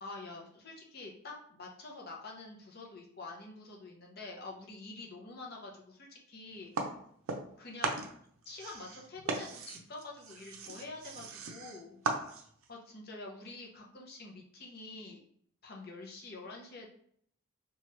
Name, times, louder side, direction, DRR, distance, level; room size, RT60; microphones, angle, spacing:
voice 1, 0.0-6.7 7.6-8.1 8.5-12.0 12.7-15.2 15.6-16.9, left 3 dB, 45° left, -1 dB, 0.6 m, -47 dB
sound 1, 6.7-7.6 7.8-12.7, right 3 dB, 75° right, 0.5 m, -38 dB
3.0 x 2.3 x 3.1 m, 0.65 s
head